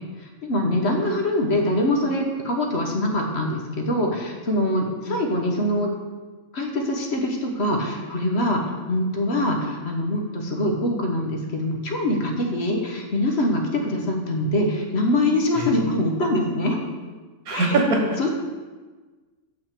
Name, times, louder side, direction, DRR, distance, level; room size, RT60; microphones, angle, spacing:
voice 1, 0.4-5.9 6.5-8.6 8.9-16.8 17.5-17.8 18.2-18.3, left 1 dB, 50° left, 1 dB, 1.3 m, -24 dB
voice 2, 17.5-18.2, right 2 dB, 85° right, 1 dB, 1.8 m, -22 dB
6.9 x 5.9 x 6.6 m, 1.3 s
omnidirectional pair, 1.5 m